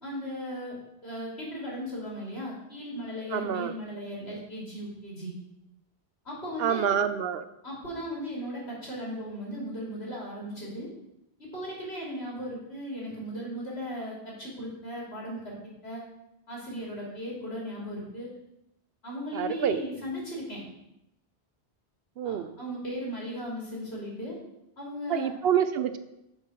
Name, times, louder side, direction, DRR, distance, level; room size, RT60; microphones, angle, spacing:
voice 1, 0.0-0.8 1.0-5.3 6.3-6.9 7.6-10.9 11.4-15.5 15.8-16.0 16.5-18.3 19.0-20.6 22.2-24.4 24.8-25.3, equal, 75° left, -4 dB, 3.5 m, -37 dB
voice 2, 3.3-3.7 6.6-7.4 19.3-19.8 22.2-22.5 25.1-26.0, right 8 dB, 70° right, 10 dB, 0.8 m, -27 dB
6.5 x 5.5 x 6.5 m, 0.86 s
omnidirectional pair, 1.1 m